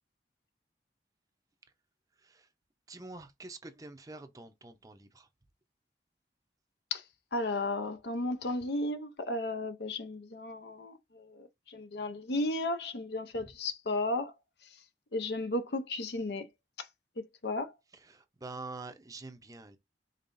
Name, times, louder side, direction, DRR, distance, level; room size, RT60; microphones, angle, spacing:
voice 1, 2.9-5.3 17.9-19.8, right 3 dB, 20° right, 0.6 m, -46 dB
voice 2, 7.3-14.3 15.1-16.4 17.2-17.7, left 2 dB, 75° left, 0.7 m, -34 dB
5.4 x 3.7 x 2.6 m
head